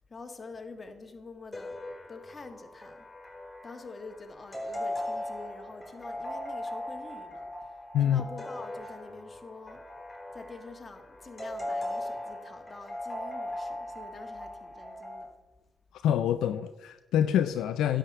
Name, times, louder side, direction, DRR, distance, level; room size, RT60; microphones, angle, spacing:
voice 1, 0.1-1.8 2.1-3.0 3.6-7.5 8.0-9.8 10.3-15.3, left 3 dB, 35° left, 6 dB, 1.7 m, -46 dB
sound 1, 1.5-15.2, left 1 dB, 20° left, 4.1 m, -39 dB
voice 2, 7.9-8.3 15.9-18.0, left 10 dB, 75° left, 11 dB, 0.3 m, -26 dB
10.5 x 5.1 x 8.2 m, 1.1 s
hypercardioid pair, 45°, 0 cm